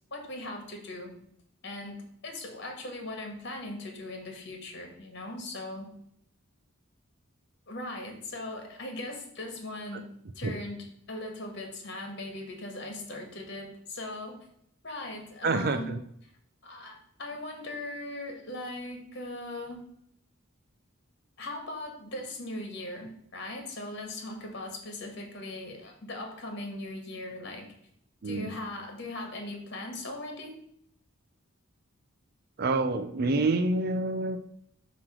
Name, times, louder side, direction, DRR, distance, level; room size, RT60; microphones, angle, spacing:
voice 1, 0.1-1.1 1.6-2.0 2.2-5.9 7.7-10.1 10.4-14.4 14.8-15.9 16.6-19.8 21.4-27.7 28.2-30.5, left 1 dB, 55° left, 2 dB, 1.7 m, -39 dB
voice 2, 15.4-16.0 28.2-28.5 32.6-34.4, right 3 dB, 45° right, 8 dB, 0.5 m, -27 dB
7.6 x 3.1 x 6.2 m, 0.71 s
head